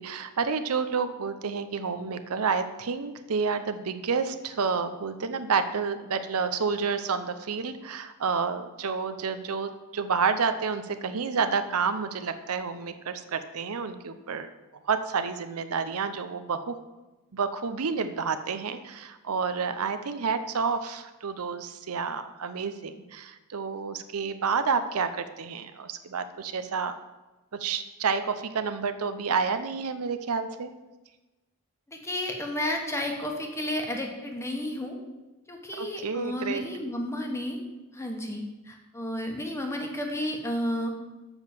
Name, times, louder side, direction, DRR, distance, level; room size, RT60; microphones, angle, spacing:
voice 1, 0.0-14.5 14.8-16.7 17.3-27.0 27.5-30.7 35.8-36.6, right 5 dB, 75° right, 10 dB, 0.6 m, -29 dB
voice 2, 31.9-35.0 35.5-37.6 37.9-41.0, left 1 dB, 10° left, 2 dB, 1.2 m, -32 dB
7.0 x 5.7 x 7.2 m, 1.1 s
head